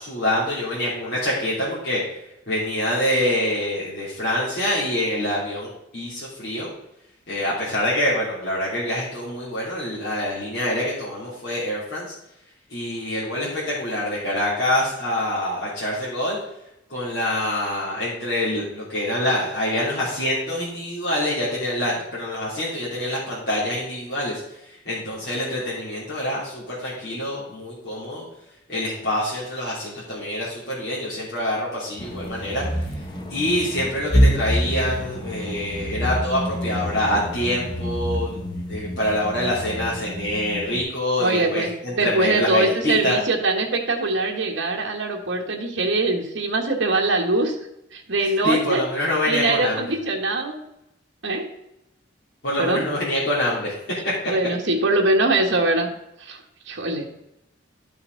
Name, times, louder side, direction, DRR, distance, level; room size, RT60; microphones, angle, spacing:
voice 1, 0.0-2.0 2.5-6.7 7.3-12.1 12.7-16.4 16.9-24.4 24.8-28.2 28.7-32.6 33.3-38.4 38.7-43.1 48.2-49.8 52.4-53.7, left 1 dB, 55° left, -8 dB, 3.0 m, -25 dB
sound 1, 32.0-40.8, equal, 20° left, 0.9 m, -26 dB
voice 2, 41.2-41.7 42.0-47.6 47.9-48.8 49.3-50.6 51.2-51.5 52.6-52.8 54.3-55.9 56.2-56.4 56.6-57.1, right 2 dB, 70° right, 1 dB, 1.5 m, -22 dB
12.0 x 5.8 x 3.9 m, 0.84 s
head